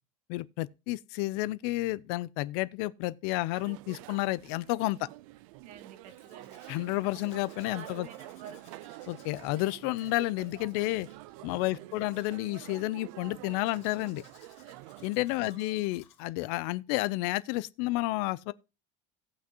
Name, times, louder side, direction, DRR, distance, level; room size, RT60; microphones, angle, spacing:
voice 1, 0.3-5.1 6.7-8.1 9.1-11.1 11.4-14.2 15.0-18.5, left 19 dB, 60° left, 0.5 m, -31 dB
sound 1, 3.5-15.1, right 18 dB, 80° right, 0.4 m, -48 dB
voice 2, 5.6-6.6 7.7-8.8 11.7-12.0 15.3-15.8, right 8 dB, 45° right, 1.3 m, -50 dB
Domestic sounds home sounds, 6.0-16.3, left 9 dB, 40° left, 2.3 m, -61 dB
17.5 x 6.0 x 2.8 m
cardioid pair, 170°, 17 cm